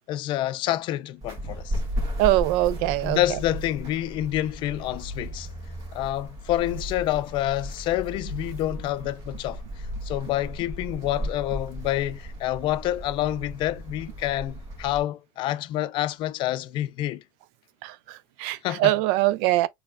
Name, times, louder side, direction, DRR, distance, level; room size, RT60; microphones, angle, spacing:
voice 1, 0.1-1.8 3.0-5.5 5.9-17.2 18.6-19.0, left 14 dB, 55° left, 0.4 m, -28 dB
sound 1, 1.2-15.0, equal, 35° right, 1.8 m, -36 dB
voice 2, 2.2-3.2 17.8-19.7, right 17 dB, 75° right, 0.4 m, -23 dB
sound 2, 3.0-4.1 4.6-5.7 6.2-7.3 7.8-8.8 9.4-10.5, equal, 10° left, 0.7 m, -41 dB
4.5 x 3.4 x 2.2 m
cardioid pair, 145°, 10 cm